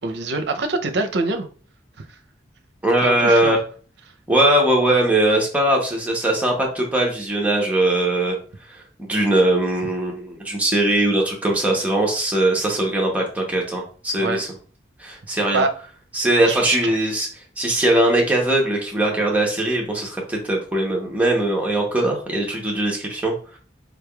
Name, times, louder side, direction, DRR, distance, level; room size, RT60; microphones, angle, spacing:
voice 1, 0.0-1.5 2.0-2.1 3.0-3.6 14.2-14.4 15.5-15.7 16.5-16.9, right 3 dB, 65° right, 7 dB, 0.6 m, -24 dB
voice 2, 2.8-3.6 4.3-8.4 8.7-14.5 15.0-15.6 16.1-17.3 17.6-23.6, right 1 dB, 10° right, -1 dB, 0.8 m, -20 dB
4.8 x 3.3 x 2.3 m, 0.40 s
head